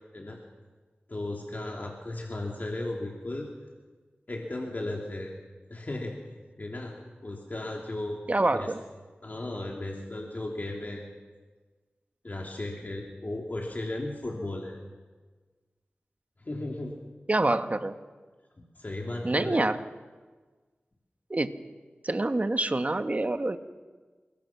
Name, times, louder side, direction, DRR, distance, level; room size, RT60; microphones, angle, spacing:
voice 1, 1.1-3.5 4.3-5.3 5.7-6.2 6.6-6.9 7.2-8.2 8.5-8.7 9.2-11.0 12.2-14.8 16.4-17.0 18.6-19.6, left 2 dB, 45° left, -1 dB, 3.1 m, -35 dB
voice 2, 8.3-8.8 17.3-18.0 19.2-19.8 21.3-21.6 22.0-23.6, right 2 dB, 40° right, 8 dB, 1.5 m, -26 dB
28.5 x 22.5 x 6.1 m, 1.4 s
cardioid pair, 45°, 4 cm